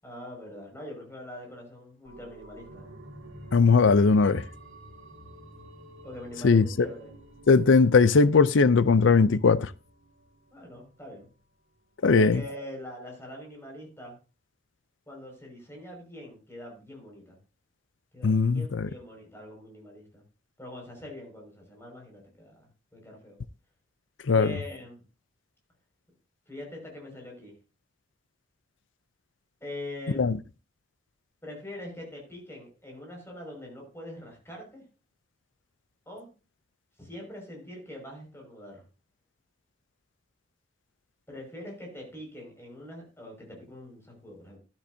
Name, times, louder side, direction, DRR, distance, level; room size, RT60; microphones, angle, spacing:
voice 1, 0.0-2.9 6.0-7.1 10.5-11.3 12.0-14.2 15.1-17.4 18.1-20.2 20.6-23.4 24.3-25.0 26.5-27.5 29.6-30.4 31.4-34.8 36.1-36.3 37.0-38.8 41.3-44.6, left 1 dB, 15° left, 5.8 m, -43 dB
sound 1, 2.0-11.4 11.8-11.9, right 1 dB, 75° right, 2.7 m, -50 dB
voice 2, 3.5-4.4 6.4-6.6 7.5-9.7 12.0-12.4 18.2-18.9 24.3-24.5 30.2-30.3, left 4 dB, 80° left, 0.5 m, -19 dB
13.0 x 12.0 x 2.8 m
head